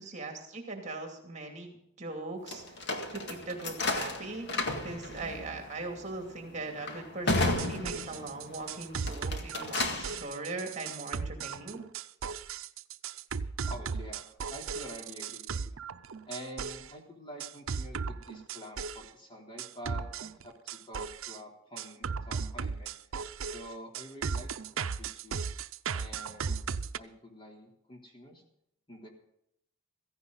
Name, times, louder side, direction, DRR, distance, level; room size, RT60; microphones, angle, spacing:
voice 1, 0.0-2.6 3.1-4.5 4.8-11.8, right 2 dB, 35° right, 3 dB, 2.6 m, -40 dB
sound 1, 2.5-8.5 9.0-10.2, left 2 dB, 55° left, 1.9 m, -33 dB
sound 2, 7.5-16.9 17.4-19.1 19.6-21.4 21.8-27.0, right 5 dB, 80° right, 0.6 m, -36 dB
voice 2, 13.3-15.8 16.3-22.9 23.4-25.4 25.9-26.6 27.0-28.4 28.9-29.1, equal, 25° left, 0 dB, 3.4 m, -47 dB
16.0 x 15.0 x 4.0 m, 0.75 s
head